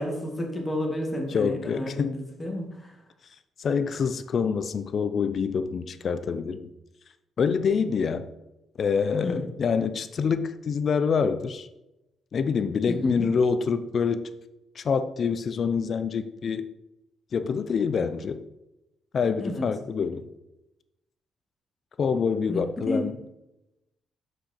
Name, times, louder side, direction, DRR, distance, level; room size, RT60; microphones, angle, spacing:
voice 1, 0.0-3.0 9.2-9.4 12.9-13.3 19.4-19.7 22.5-23.1, left 1 dB, 20° left, 1 dB, 1.7 m, -31 dB
voice 2, 1.3-2.2 3.6-6.7 7.4-8.3 8.8-11.7 12.3-14.3 14.8-16.7 17.3-18.4 19.1-20.3 22.0-23.2, left 6 dB, 50° left, 11 dB, 0.5 m, -26 dB
6.3 x 4.9 x 4.3 m, 0.94 s
cardioid pair, 90°, 0 cm